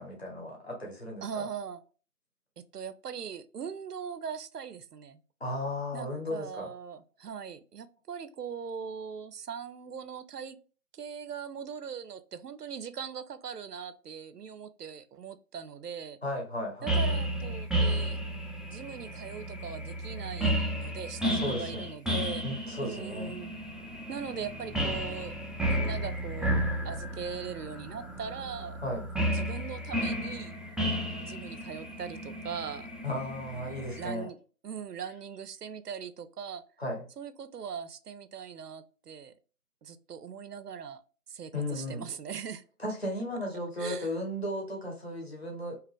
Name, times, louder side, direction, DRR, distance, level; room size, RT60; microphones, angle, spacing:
voice 1, 0.0-1.5 5.4-6.7 16.2-17.0 21.4-21.9 22.4-23.3 28.8-29.1 33.0-34.3 36.8-37.0 41.5-42.1 42.8-45.8, left 1 dB, 40° left, -1 dB, 0.9 m, -35 dB
voice 2, 1.2-1.8 2.6-5.2 5.9-10.6 10.9-16.2 16.8-18.2 18.6-22.4 22.8-23.6 24.1-25.3 25.6-28.8 29.2-30.5 31.2-32.9 33.5-34.4 34.6-36.6 37.2-39.3 39.8-41.0 41.3-42.6 43.8-44.1, right 7 dB, 85° right, 12 dB, 0.5 m, -40 dB
sound 1, 16.9-34.1, right 1 dB, ahead, 0.4 m, -32 dB
2.8 x 2.4 x 2.3 m, 0.37 s
figure-of-eight pair, 175°, 46 cm